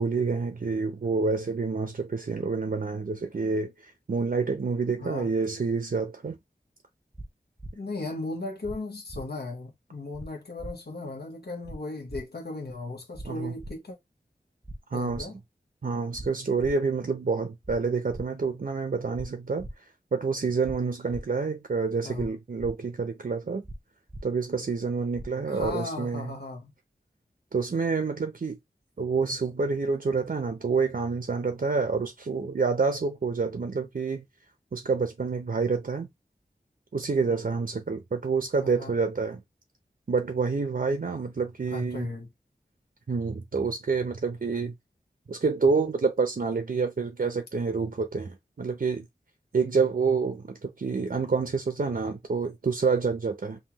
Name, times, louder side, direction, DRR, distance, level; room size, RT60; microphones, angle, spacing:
voice 1, 0.0-6.4 13.2-13.6 14.9-15.3 15.8-23.6 24.2-26.4 27.5-28.6 29.0-34.2 34.7-36.1 36.9-39.4 40.1-42.1 43.1-44.7 45.3-49.1 49.5-53.6, right 4 dB, 60° right, 0.7 m, -28 dB
sound 1, 7.1-7.3 7.6-7.7 8.6-8.8 9.1-9.2 10.1-10.3 10.6-10.7 11.6-11.8 12.1-12.2 13.1-13.3 13.6-13.7 14.6-14.8 15.1-15.2 16.1-16.3 16.6-16.7 17.6-17.8 18.1-18.2 19.1-19.3 19.6-19.7 20.6-20.8 21.1-21.2 22.1-22.3 22.6-22.7 23.6-23.8 24.1-24.2 25.1-25.3 25.6-25.7, right 1 dB, 5° right, 0.5 m, -39 dB
voice 2, 7.7-14.0 14.9-15.4 22.0-22.3 25.5-26.7 38.6-38.9 41.7-42.3, left 2 dB, 75° left, 1.2 m, -36 dB
5.5 x 2.3 x 3.0 m
wide cardioid pair, 55°, 17 cm